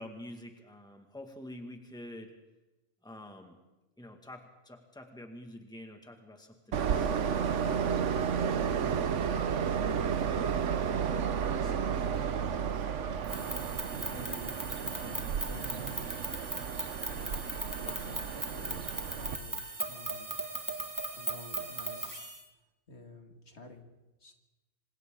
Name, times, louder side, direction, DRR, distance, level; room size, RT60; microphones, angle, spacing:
voice 1, 0.0-2.3 3.0-3.6 4.0-7.8, left 1 dB, 5° left, 3 dB, 1.9 m, -47 dB
Train, 6.7-19.4, right 7 dB, 75° right, 1.2 m, -32 dB
voice 2, 11.0-16.2 16.6-17.5 17.8-20.3 21.2-22.3 22.9-23.9 24.2-24.3, left 2 dB, 65° left, 3 dB, 2.3 m, -50 dB
sound 1, 13.2-22.4, right 2 dB, 15° right, 1.8 m, -38 dB
27.0 x 26.0 x 3.8 m, 1.1 s
omnidirectional pair, 1.2 m